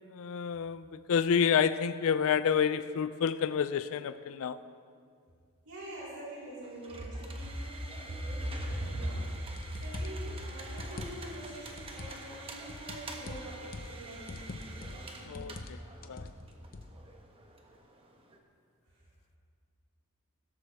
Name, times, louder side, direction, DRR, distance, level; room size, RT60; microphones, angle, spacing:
voice 1, 0.1-4.6 15.3-15.8 16.1-16.3, left 7 dB, 70° left, 0.4 m, -29 dB
voice 2, 5.6-9.4 9.7-15.4, equal, 85° right, 4.1 m, -40 dB
sound 1, 6.6-18.4, right 2 dB, 25° right, 1.2 m, -48 dB
sound 2, 9.6-10.3 10.7-11.4 11.8-12.2 12.7-14.0 14.3-15.1 15.4-15.8 16.0-16.9, left 2 dB, 45° left, 0.7 m, -44 dB
17.0 x 13.0 x 3.5 m
head